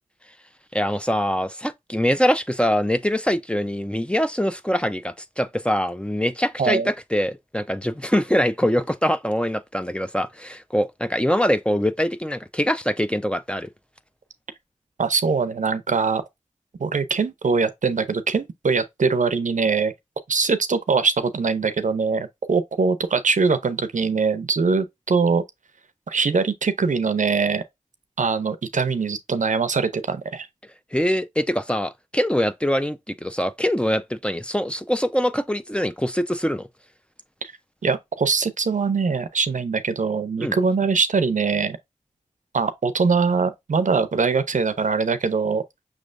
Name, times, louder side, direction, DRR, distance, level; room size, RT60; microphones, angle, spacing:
voice 1, 0.7-13.7 30.9-36.7 40.4-40.5, equal, 10° left, 0.6 m, -23 dB
voice 2, 6.6-6.9 15.0-16.2 16.8-19.9 20.3-25.4 26.1-27.6 28.2-30.5 37.4-37.5 37.8-41.8 42.5-45.6, right 4 dB, 80° right, 0.6 m, -22 dB
6.2 x 3.2 x 2.5 m
wide cardioid pair, 50°, 13 cm